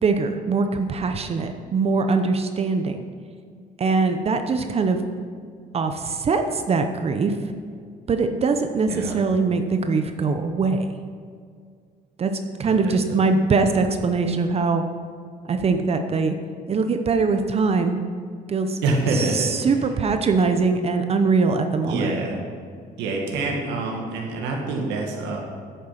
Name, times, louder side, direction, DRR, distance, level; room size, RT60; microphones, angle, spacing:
voice 1, 0.0-3.0 3.8-5.0 5.7-7.4 8.1-10.9 12.2-12.3 12.6-14.8 15.4-16.3 16.7-18.0 18.5-18.8 19.1-22.1, right 4 dB, 35° right, 7 dB, 0.8 m, -22 dB
voice 2, 12.6-13.2 18.8-19.5 21.9-22.3 23.0-25.4, right 3 dB, 85° right, 0 dB, 1.9 m, -26 dB
10.0 x 8.9 x 5.9 m, 2.1 s
cardioid pair, 110°, 17 cm